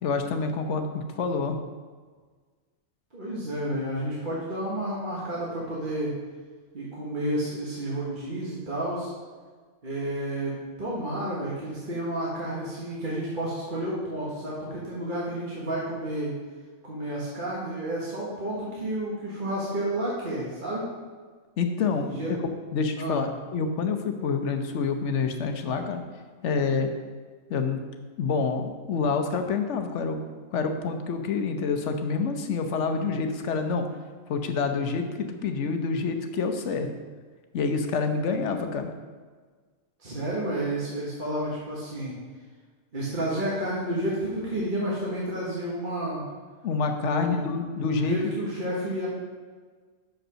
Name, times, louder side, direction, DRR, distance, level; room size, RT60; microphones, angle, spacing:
voice 1, 0.0-1.6 21.6-22.4 22.7-26.0 26.4-26.9 27.5-27.8 28.2-30.2 30.5-33.8 34.3-36.9 37.5-38.9 46.6-48.3, left 4 dB, 60° left, 6 dB, 1.0 m, -27 dB
voice 2, 3.1-6.1 6.7-9.1 9.8-16.3 16.8-20.8 22.0-22.3 23.0-23.2 40.0-42.1 42.9-46.2 47.0-47.5 47.8-49.1, right 1 dB, 40° right, -6 dB, 1.6 m, -31 dB
6.4 x 5.3 x 6.2 m, 1.5 s
omnidirectional pair, 1.4 m